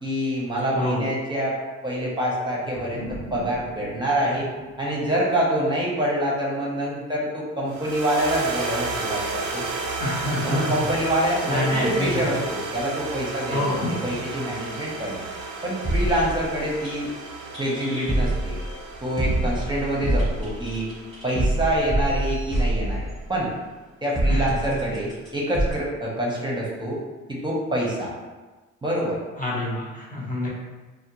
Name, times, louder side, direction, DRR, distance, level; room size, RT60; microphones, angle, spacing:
voice 1, 0.0-1.5 1.8-4.5 4.8-9.6 10.4-13.8 14.0-15.2 15.6-17.1 17.6-18.6 19.0-20.9 21.2-23.5 24.0-27.0 27.3-28.1 28.8-29.2, right 1 dB, 15° right, -5 dB, 0.6 m, -26 dB
sound 1, 2.7-7.5, equal, 80° left, 1.1 m, -41 dB
sound 2, 7.7-22.1, right 3 dB, 80° right, 0.5 m, -33 dB
voice 2, 10.0-10.8 11.4-12.2 13.5-14.1 24.3-24.8 29.4-30.5, left 1 dB, 25° left, -5 dB, 0.6 m, -27 dB
sound 3, 15.8-16.9 17.5-18.8 19.2-23.3 24.1-25.3 25.5-25.7, right 1 dB, ahead, 1.0 m, -25 dB
2.4 x 2.1 x 2.9 m, 1.2 s
cardioid pair, 90°, 30 cm